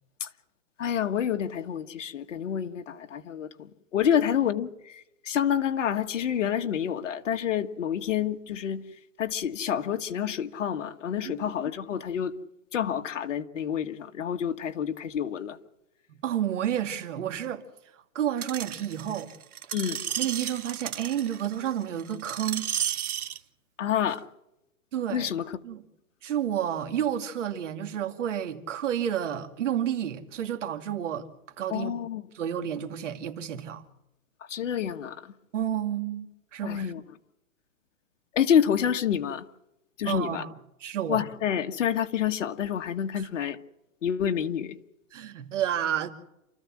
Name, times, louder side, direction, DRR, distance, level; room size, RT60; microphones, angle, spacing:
voice 1, 0.8-8.8 9.2-12.3 12.7-15.6 19.7-20.0 23.8-24.2 25.1-25.6 31.7-32.2 34.5-35.3 36.6-37.0 38.3-39.4 40.0-40.4 41.1-43.6 44.0-44.8, left 9 dB, 60° left, 1.7 m, -28 dB
voice 2, 16.1-17.6 18.1-19.3 20.2-22.7 24.9-25.3 25.6-25.8 26.2-31.3 31.6-31.9 32.3-33.8 35.5-36.9 40.0-40.5 40.8-41.2 43.1-43.2 45.1-46.1, right 10 dB, 55° right, 2.6 m, -30 dB
Screech, 18.4-23.4 24.1-24.2, right 10 dB, 90° right, 1.3 m, -33 dB
29.0 x 14.0 x 7.5 m
hypercardioid pair, 160°, 42 cm